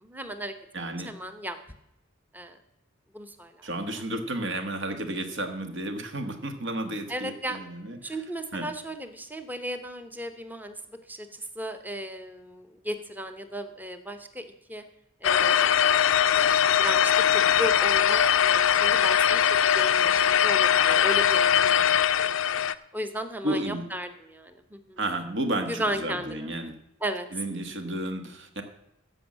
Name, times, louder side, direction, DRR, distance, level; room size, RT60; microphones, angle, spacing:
voice 1, 0.0-0.5 1.0-1.6 2.3-2.6 3.1-3.7 3.9-4.0 4.4-4.5 7.1-7.6 8.0-10.8 11.1-14.4 14.7-14.8 15.2-15.9 16.8-21.8 22.2-22.6 22.9-25.0 25.7-26.5 27.0-27.3, right 1 dB, 10° right, 8 dB, 0.8 m, -35 dB
voice 2, 0.7-1.1 3.6-8.2 8.5-8.7 23.4-23.8 25.0-26.7 27.3-28.6, right 1 dB, 60° right, 7 dB, 1.5 m, -32 dB
sound 1, 15.2-22.7, left 9 dB, 70° left, 0.5 m, -21 dB
14.5 x 5.5 x 7.4 m, 0.84 s
head